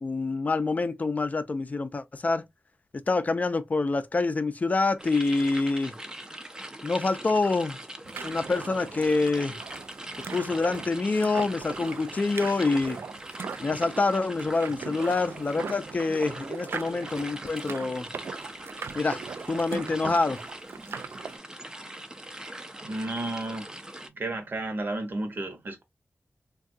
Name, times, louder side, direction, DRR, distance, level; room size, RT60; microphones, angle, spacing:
voice 1, 0.0-2.4 3.1-6.0 6.8-7.8 8.2-9.6 10.3-13.0 13.6-18.1 18.9-19.2 19.5-20.4, left 3 dB, 40° left, 0.4 m, -26 dB
sound 1, 5.0-24.1, right 1 dB, 15° right, 0.4 m, -42 dB
sound 2, 8.0-21.4, right 5 dB, 80° right, 0.3 m, -40 dB
voice 2, 22.4-23.8 24.1-25.8, right 2 dB, 60° right, 0.9 m, -33 dB
3.5 x 2.3 x 2.5 m
wide cardioid pair, 110°, 4 cm